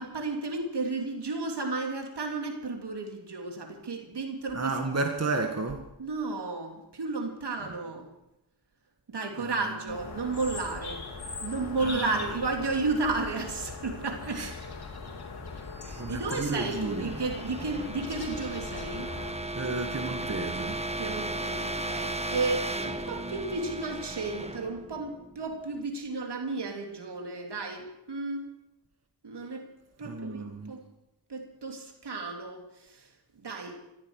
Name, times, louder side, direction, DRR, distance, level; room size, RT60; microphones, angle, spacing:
voice 1, 0.0-4.7 6.0-8.1 9.1-11.0 11.4-14.4 15.8-19.1 21.0-28.4 29.2-29.7 30.0-30.8 31.3-32.6 32.9-33.0 33.4-33.8, right 3 dB, 65° right, 3 dB, 3.2 m, -33 dB
voice 2, 4.5-5.8 7.6-7.7 9.4-10.0 11.8-12.3 14.3-14.5 16.0-17.2 19.5-20.9 30.0-30.7, right 3 dB, 35° right, 4 dB, 1.9 m, -33 dB
sound 1, 9.9-19.3, left 4 dB, 55° left, 3.8 m, -40 dB
sound 2, 16.0-25.7, right 2 dB, 15° right, 1.4 m, -36 dB
15.5 x 13.0 x 6.6 m, 0.89 s
cardioid pair, 50°, 44 cm